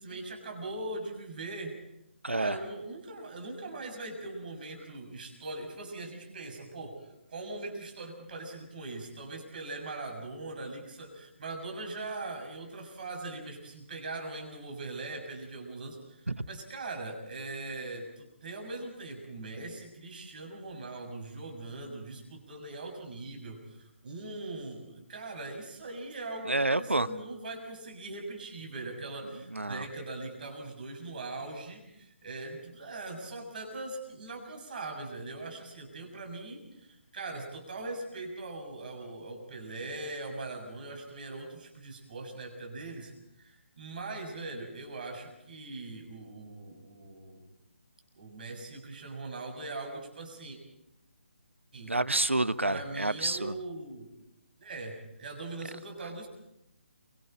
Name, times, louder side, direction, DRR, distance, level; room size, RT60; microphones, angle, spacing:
voice 1, 0.0-1.7 2.3-7.0 7.3-43.1 43.4-47.5 48.1-50.6 51.7-51.9 52.6-54.1 54.6-56.3, right 2 dB, 45° right, 3 dB, 6.8 m, -41 dB
voice 2, 2.2-2.5 16.3-16.4 26.5-27.1 29.5-29.9 51.9-53.5, right 2 dB, 80° right, 14 dB, 1.0 m, -28 dB
28.5 x 25.0 x 4.4 m, 0.81 s
figure-of-eight pair, 145°, 7 cm